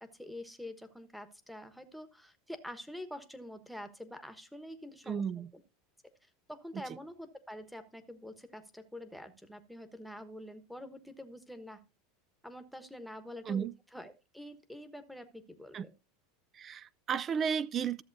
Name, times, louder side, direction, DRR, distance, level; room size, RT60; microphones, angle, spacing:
voice 1, 0.0-5.2 5.5-5.6 6.5-11.8 12.4-15.9, left 1 dB, ahead, 1.1 m, -46 dB
voice 2, 5.1-5.5 6.7-6.8 13.5-13.7 15.7-15.9 16.6-18.0, right 7 dB, 30° right, 0.4 m, -33 dB
14.0 x 7.4 x 2.6 m
supercardioid pair, 125°, 0 cm